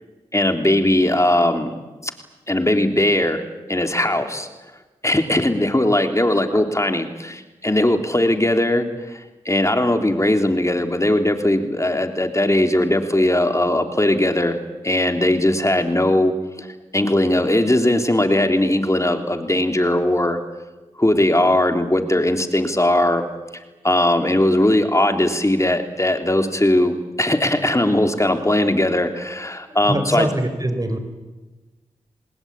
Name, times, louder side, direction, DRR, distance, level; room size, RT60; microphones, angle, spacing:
voice 1, 0.3-1.7 2.0-2.1 2.5-3.4 3.7-4.5 5.0-14.6 14.8-16.3 16.6-16.7 16.9-20.4 21.0-23.2 23.8-30.3, left 1 dB, 20° left, 6 dB, 3.3 m, -19 dB
voice 2, 29.9-31.0, right 1 dB, 25° right, 8 dB, 5.4 m, -23 dB
26.5 x 20.0 x 8.9 m, 1.2 s
cardioid pair, 40°, 14 cm